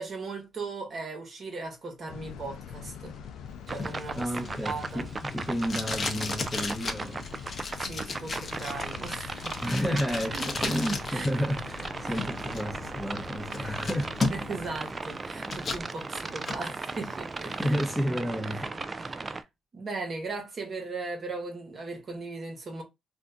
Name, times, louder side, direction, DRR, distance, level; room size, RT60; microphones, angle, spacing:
voice 1, 0.0-3.2 3.7-4.3 4.6-5.1 7.8-9.6 10.3-11.3 12.0-12.1 13.6-13.7 14.3-17.8 18.1-18.6 19.0-19.4 19.7-22.8, right 3 dB, 45° right, 1.1 m, -38 dB
sound 1, 2.1-14.8, left 6 dB, 80° left, 0.3 m, -43 dB
sound 2, 3.7-19.4, right 3 dB, 30° right, 0.3 m, -37 dB
Packing tape duct tape, 3.8-11.3 11.6-12.6 13.1-13.2 13.5-14.7 15.0-15.8 16.2-16.6, left 3 dB, 35° left, 0.7 m, -34 dB
voice 2, 4.1-7.3 9.6-14.2 14.9-15.0 17.5-18.7, equal, ahead, 0.8 m, -31 dB
2.5 x 2.1 x 3.7 m
cardioid pair, 90°, 0 cm